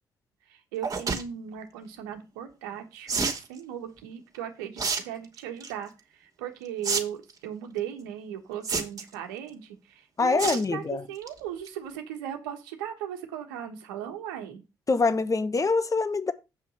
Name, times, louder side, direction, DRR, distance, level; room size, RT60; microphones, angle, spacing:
voice 1, 0.5-3.2 3.5-14.6, right 10 dB, 80° right, 1.4 m, -37 dB
sound 1, 0.8-1.2 3.1-3.4 4.8-5.0 5.4-5.7 6.8-7.0 7.3-7.4 8.6-9.1 10.4-10.6 11.0-11.3 11.7-11.8 11.9-12.0, right 4 dB, 35° right, 2.7 m, -28 dB
voice 2, 10.2-11.0 14.9-16.3, left 4 dB, 30° left, 1.3 m, -24 dB
8.5 x 5.5 x 5.5 m
hypercardioid pair, 45°, 10 cm